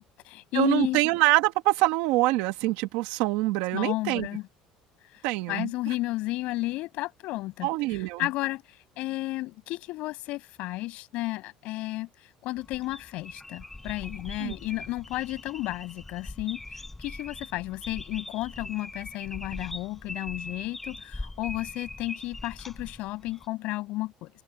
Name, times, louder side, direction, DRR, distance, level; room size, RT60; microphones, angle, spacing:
voice 1, 0.0-1.0 3.7-4.5 5.1-5.2 5.5-24.3, left 19 dB, 65° left, 7.5 m, -33 dB
voice 2, 0.5-4.3 5.2-5.7 7.6-8.2 14.4-14.5, right 19 dB, 85° right, 1.1 m, -25 dB
sound 1, 12.6-23.5, left 2 dB, 10° left, 4.1 m, -41 dB
cardioid pair, 150°, 2 cm